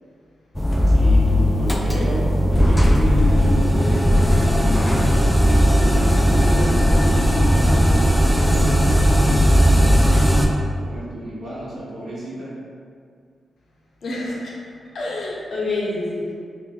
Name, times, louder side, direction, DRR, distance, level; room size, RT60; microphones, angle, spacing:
sound 1, 0.5-10.5, equal, 10° left, 0.3 m, -16 dB
voice 1, 0.9-5.0 5.8-9.6 10.8-12.5, right 1 dB, 50° right, -7 dB, 1.0 m, -31 dB
voice 2, 14.0-14.6 14.9-16.3, left 2 dB, 60° left, -4 dB, 0.6 m, -27 dB
2.8 x 2.1 x 3.8 m, 2.1 s
cardioid pair, 95°, 0 cm